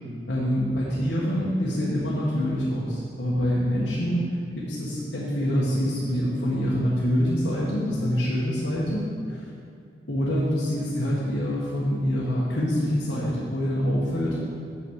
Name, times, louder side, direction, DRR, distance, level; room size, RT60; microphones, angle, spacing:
voice 1, 0.3-4.2 4.5-9.0 9.3-9.4 10.1-14.5, equal, 80° left, -6 dB, 1.4 m, -25 dB
7.7 x 5.9 x 6.4 m, 2.3 s
head